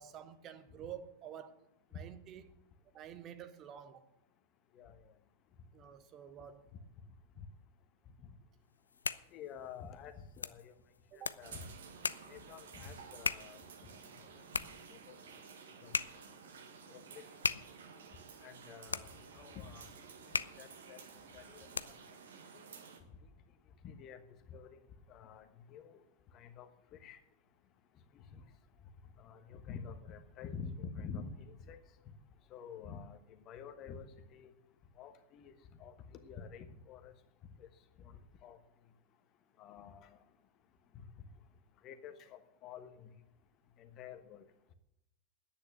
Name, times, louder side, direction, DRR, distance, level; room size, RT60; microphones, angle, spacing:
voice 1, 0.0-1.7 1.9-2.5 2.9-4.1 5.7-6.7 11.1-11.4, right 9 dB, 30° right, 0.9 m, -49 dB
sound 1, 8.7-22.2, left 5 dB, 75° left, 0.4 m, -42 dB
voice 2, 9.3-10.7 11.2-11.7 12.3-13.6 15.1-15.2 15.8-15.9 16.9-17.2 18.4-19.1 19.3-19.9 20.6-21.0 21.3-21.7 23.8-24.2 24.5-24.7 25.1-26.0 26.3-27.2 28.3-28.4 29.2-31.8 32.5-33.2 33.5-34.5 35.0-35.5 35.8-35.9 36.2-37.1 38.0-38.6 39.6-40.2 41.8-43.1 43.8-44.4, left 6 dB, 35° left, 1.3 m, -48 dB
sound 2, 11.4-23.0, right 5 dB, 65° right, 1.6 m, -53 dB
10.5 x 8.8 x 8.8 m
figure-of-eight pair, 90°, 0 cm